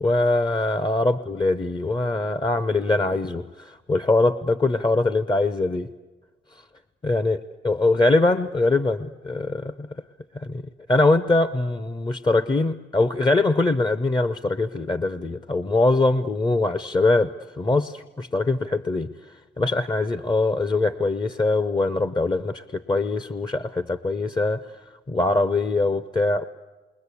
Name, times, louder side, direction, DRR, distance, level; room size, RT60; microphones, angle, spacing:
voice 1, 0.0-5.9 7.0-9.9 10.3-10.6 10.9-19.1 19.6-24.6 25.1-26.4, left 2 dB, 25° left, 13 dB, 0.8 m, -22 dB
28.0 x 22.5 x 8.3 m, 1.2 s
cardioid pair, 90°, 20 cm